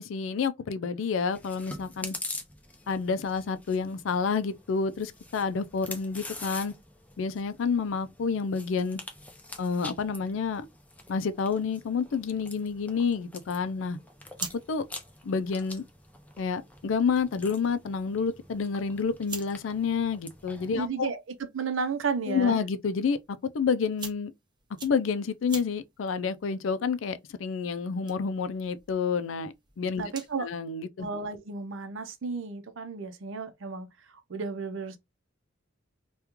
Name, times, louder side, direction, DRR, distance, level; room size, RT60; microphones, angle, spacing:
voice 1, 0.0-2.1 2.9-6.7 7.2-9.0 9.6-10.7 11.1-14.0 14.7-14.8 15.2-15.8 16.4-21.1 22.3-24.3 24.8-30.0 30.4-31.1, left 5 dB, 75° left, 0.4 m, -29 dB
Chewing mastication, 1.3-20.9, left 2 dB, 10° left, 0.6 m, -46 dB
sound 1, 14.0-30.5, right 4 dB, 25° right, 0.8 m, -48 dB
voice 2, 20.8-22.6 30.0-30.5 31.0-33.9 34.3-35.0, right 5 dB, 75° right, 0.6 m, -33 dB
3.0 x 2.3 x 3.5 m
head